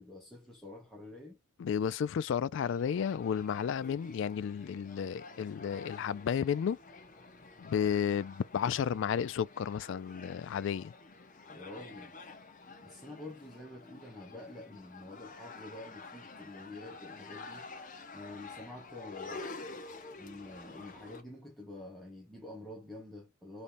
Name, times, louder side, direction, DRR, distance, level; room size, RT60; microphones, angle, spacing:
voice 1, 0.0-1.4 11.5-12.2 12.8-17.6 18.1-19.5 20.2-23.6, left 2 dB, ahead, 1.1 m, -48 dB
voice 2, 1.6-6.8 7.6-10.9, left 7 dB, 65° left, 0.3 m, -32 dB
sound 1, 2.6-21.2, left 3 dB, 40° left, 0.9 m, -49 dB
5.3 x 3.2 x 2.6 m
head